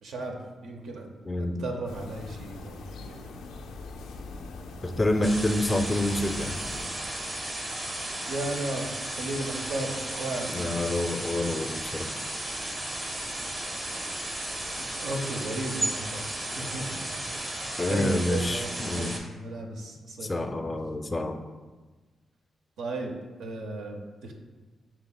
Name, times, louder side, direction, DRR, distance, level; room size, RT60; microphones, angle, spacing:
voice 1, 0.0-1.1 1.4-3.2 8.3-8.9 9.2-10.8 15.0-17.5 17.9-20.5 22.8-23.1 23.4-24.3, right 2 dB, 85° right, 2 dB, 0.6 m, -35 dB
voice 2, 1.2-1.6 4.8-6.6 10.5-12.1 17.8-19.2 20.2-21.4, left 1 dB, 25° left, 7 dB, 0.4 m, -28 dB
sound 1, 1.9-6.9, left 3 dB, 90° left, 0.4 m, -41 dB
sound 2, 5.2-19.2, right 1 dB, 40° right, 0.9 m, -34 dB
7.1 x 2.9 x 2.3 m, 1.3 s
cardioid pair, 60°, 0 cm